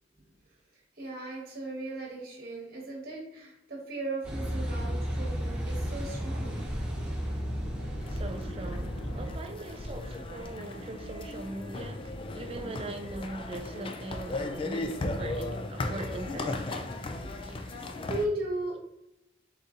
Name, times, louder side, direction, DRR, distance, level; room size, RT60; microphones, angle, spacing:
voice 1, 1.0-6.6 6.9-7.1 7.4-8.1 10.1-10.2 17.1-17.2 17.6-18.8, right 1 dB, 55° right, 1.3 m, -37 dB
Car passing by / Idling / Accelerating revving vroom, 4.2-9.3, equal, 5° right, 1.0 m, -33 dB
sound 1, 8.0-18.3, left 2 dB, 30° left, 0.3 m, -36 dB
voice 2, 8.1-16.9 17.4-17.6, right 2 dB, 35° right, 0.4 m, -41 dB
4.0 x 4.0 x 2.5 m
head